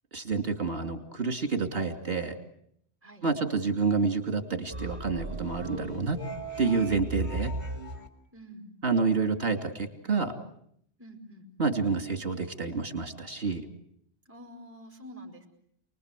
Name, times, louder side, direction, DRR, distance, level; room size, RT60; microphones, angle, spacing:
voice 1, 0.1-2.4 3.2-6.2 6.6-7.5 8.8-10.3 11.6-13.6, right 4 dB, 60° right, 5 dB, 2.8 m, -28 dB
sound 1, 4.7-8.1, right 2 dB, 45° right, 2.7 m, -36 dB
voice 2, 8.3-8.7 11.0-11.5 14.3-15.5, equal, 10° right, 3 dB, 5.3 m, -47 dB
29.0 x 21.0 x 8.3 m, 0.71 s
omnidirectional pair, 1.1 m